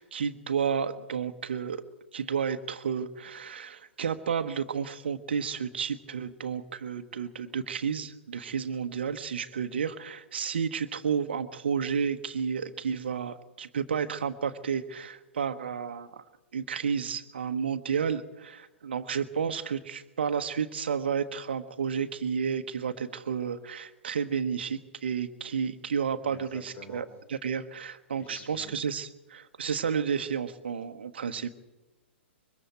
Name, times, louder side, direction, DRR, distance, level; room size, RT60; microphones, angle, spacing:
voice 1, 0.0-1.8 2.1-16.2 16.5-31.5, right 7 dB, 60° right, 8 dB, 1.3 m, -31 dB
voice 2, 26.2-27.0 28.2-28.8, left 3 dB, 20° left, 6 dB, 3.7 m, -46 dB
25.0 x 22.5 x 4.6 m, 1.1 s
figure-of-eight pair, 115°, 6 cm